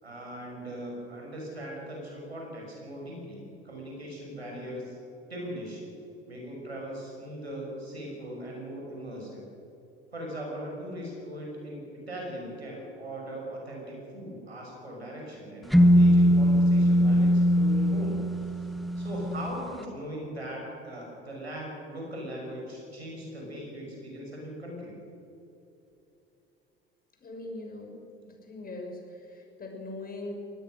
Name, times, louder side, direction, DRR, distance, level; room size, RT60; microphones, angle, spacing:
voice 1, 0.0-4.9 5.3-5.8 6.3-9.4 10.1-18.2 19.0-25.0, right 1 dB, 85° right, -1 dB, 5.8 m, -39 dB
sound 1, 15.7-19.6, equal, ahead, 1.4 m, -21 dB
voice 2, 27.2-27.9 28.2-29.0 29.3-30.3, left 2 dB, 30° left, 1 dB, 6.2 m, -40 dB
24.5 x 18.5 x 6.5 m, 2.9 s
figure-of-eight pair, 65°, 31 cm